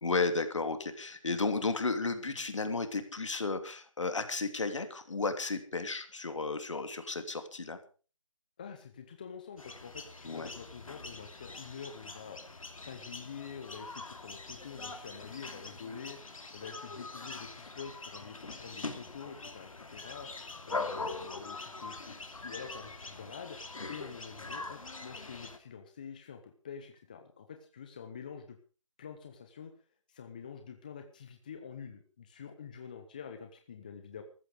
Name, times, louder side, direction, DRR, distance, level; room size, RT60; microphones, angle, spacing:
voice 1, 0.0-7.8 10.2-10.5 20.7-20.9, left 3 dB, 65° left, 8 dB, 3.0 m, -33 dB
voice 2, 8.6-12.4 12.8-16.2 16.5-20.3 20.6-23.6 23.9-28.6 29.0-29.7 30.1-34.2, left 6 dB, 15° left, 6 dB, 0.8 m, -47 dB
sound 1, 9.6-25.6, left 3 dB, 85° left, 2.9 m, -43 dB
14.5 x 14.0 x 5.1 m, 0.37 s
figure-of-eight pair, 170°, 17 cm